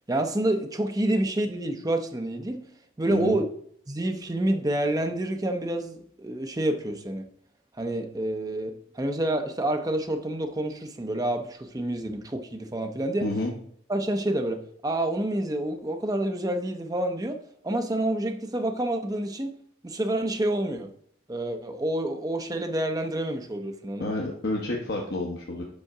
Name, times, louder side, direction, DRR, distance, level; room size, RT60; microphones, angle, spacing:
voice 1, 0.1-2.6 3.0-3.4 3.9-7.3 7.8-13.3 13.9-17.4 17.6-19.5 19.8-20.9 21.3-24.1, right 1 dB, 15° right, 6 dB, 0.5 m, -28 dB
voice 2, 13.2-13.5 24.0-25.6, left 2 dB, 50° left, -1 dB, 0.9 m, -29 dB
5.6 x 5.3 x 4.8 m, 0.64 s
head